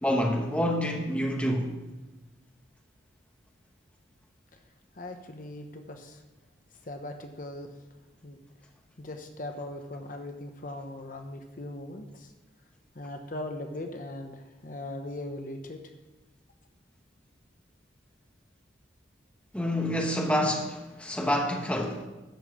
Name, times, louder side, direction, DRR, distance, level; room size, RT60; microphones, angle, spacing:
voice 1, 0.0-1.7 19.5-22.1, equal, 5° left, 1.0 m, -27 dB
voice 2, 5.0-6.2 6.9-7.7 8.2-8.4 9.0-12.3 12.9-15.8, left 1 dB, 45° left, 0.9 m, -39 dB
11.5 x 5.5 x 7.1 m
head